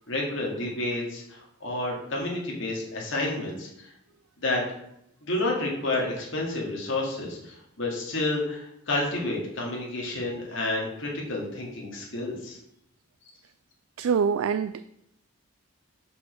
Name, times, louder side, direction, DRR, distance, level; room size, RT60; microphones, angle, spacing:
voice 1, 0.1-3.9 4.4-4.6 5.2-12.6, left 2 dB, 65° left, -2 dB, 2.3 m, -30 dB
voice 2, 14.0-14.8, right 6 dB, 85° right, 12 dB, 0.3 m, -25 dB
5.7 x 5.2 x 6.1 m, 0.75 s
head